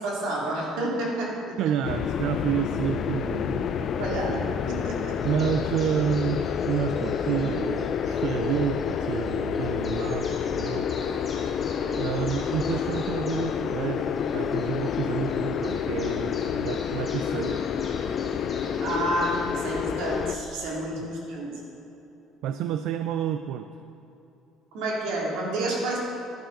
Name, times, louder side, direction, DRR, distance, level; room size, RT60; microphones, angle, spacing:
voice 1, 0.0-1.6 3.8-4.3 4.7-5.1 11.8-12.2 18.8-21.5 24.7-26.0, right 1 dB, 75° right, -3 dB, 2.4 m, -30 dB
voice 2, 1.6-3.8 4.1-4.5 5.2-11.2 12.0-17.6 21.0-21.1 22.4-23.7, right 9 dB, 55° right, 9 dB, 0.3 m, -30 dB
sound 1, 1.8-20.4, left 7 dB, 35° left, 0.3 m, -29 dB
sound 2, 5.2-20.6, left 1 dB, 15° left, 1.4 m, -45 dB
11.5 x 10.0 x 3.8 m, 2.9 s
cardioid pair, 180°, 0 cm